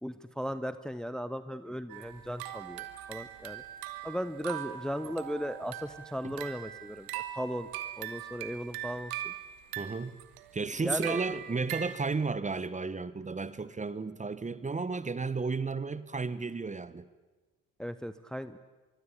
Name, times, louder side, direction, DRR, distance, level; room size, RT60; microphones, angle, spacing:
voice 1, 0.0-3.6 4.0-7.1 7.3-7.7 8.0-9.3 10.8-11.2 17.8-18.6, equal, ahead, 1.1 m, -37 dB
sound 1, 1.9-12.0, right 12 dB, 60° right, 1.7 m, -41 dB
voice 2, 9.8-10.2 10.5-17.0, right 4 dB, 20° right, 1.3 m, -33 dB
24.0 x 23.5 x 8.5 m
figure-of-eight pair, 50°, 41 cm